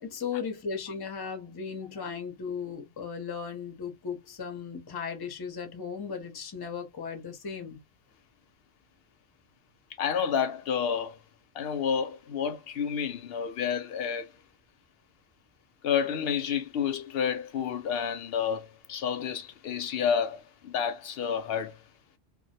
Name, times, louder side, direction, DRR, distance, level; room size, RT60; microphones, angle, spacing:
voice 1, 0.0-7.8, left 6 dB, 30° left, 0.5 m, -36 dB
voice 2, 10.0-11.2 11.5-14.3 15.8-21.8, left 7 dB, 65° left, 0.7 m, -30 dB
2.2 x 2.1 x 2.7 m
omnidirectional pair, 1.2 m